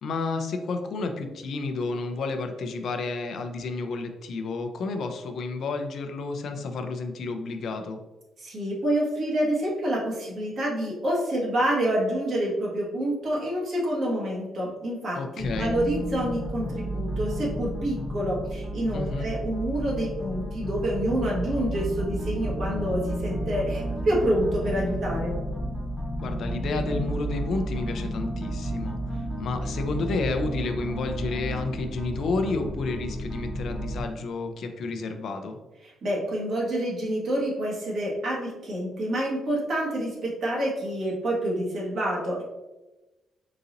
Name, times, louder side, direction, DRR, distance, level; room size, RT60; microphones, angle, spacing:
voice 1, 0.0-8.0 15.1-15.7 18.9-19.3 26.2-35.6, left 3 dB, 65° left, 5 dB, 0.4 m, -31 dB
voice 2, 8.4-25.3 36.0-42.4, right 1 dB, 60° right, -4 dB, 1.3 m, -27 dB
sound 1, 15.4-34.0, right 1 dB, 5° left, 0.9 m, -32 dB
3.9 x 2.8 x 2.5 m, 1.1 s
cardioid pair, 90°, 0 cm